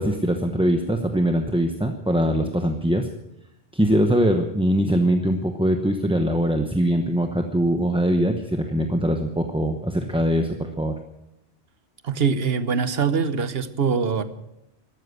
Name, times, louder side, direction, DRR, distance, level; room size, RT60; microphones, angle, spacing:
voice 1, 0.0-3.1 3.7-10.9, equal, 5° right, 4 dB, 0.9 m, -22 dB
voice 2, 12.0-14.2, right 6 dB, 65° right, 12 dB, 1.2 m, -23 dB
13.5 x 13.0 x 8.1 m, 0.86 s
omnidirectional pair, 1.1 m